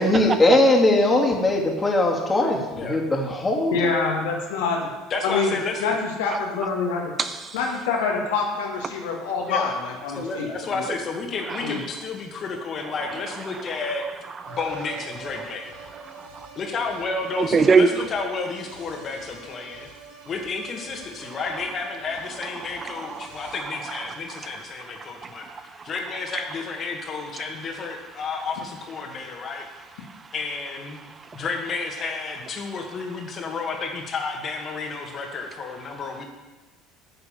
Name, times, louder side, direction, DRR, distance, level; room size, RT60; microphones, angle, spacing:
voice 1, 0.0-3.9, left 2 dB, 20° left, -1 dB, 2.7 m, -20 dB
voice 2, 3.7-4.9 5.2-7.1 7.5-10.8 11.6-11.8, left 4 dB, 70° left, 0 dB, 1.9 m, -26 dB
voice 3, 5.1-6.0 9.4-9.8 10.1-14.1 14.5-15.7 16.6-19.9 20.3-29.7 30.0-30.1 30.3-31.0 31.3-36.2, left 4 dB, 40° left, 2 dB, 2.1 m, -31 dB
voice 4, 7.2-7.7 9.3-10.0 10.8-11.0 11.4-11.8 12.7-15.5 15.9-16.3 17.3-18.1 21.2-21.6 22.1-24.5 24.9-26.7 27.4-27.5 28.4-28.5 29.0-29.3 29.6-31.4 31.9-32.8 35.1-35.2, right 4 dB, 30° right, 10 dB, 0.6 m, -29 dB
sound 1, 14.4-23.6, right 4 dB, 70° right, 1.9 m, -45 dB
9.6 x 6.8 x 7.2 m, 1.2 s
figure-of-eight pair, 65°, 0 cm